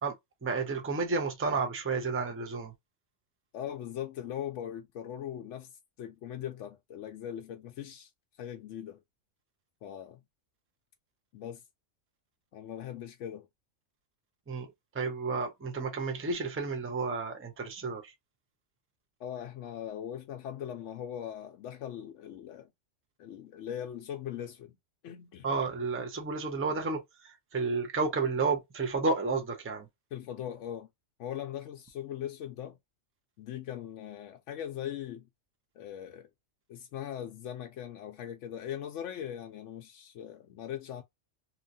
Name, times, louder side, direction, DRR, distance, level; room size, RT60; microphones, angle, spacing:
voice 1, 0.4-2.7 14.5-18.1 25.4-29.9, right 4 dB, 15° right, 0.4 m, -31 dB
voice 2, 3.5-5.7 6.0-8.1 8.4-9.0 9.8-10.2 11.3-11.6 12.5-13.5 19.2-22.7 23.2-24.8 25.0-25.5 30.1-30.9 31.2-32.8 33.4-35.3 35.8-36.3 36.7-41.0, left 10 dB, 75° left, 0.9 m, -40 dB
2.9 x 2.4 x 2.6 m
omnidirectional pair, 1.3 m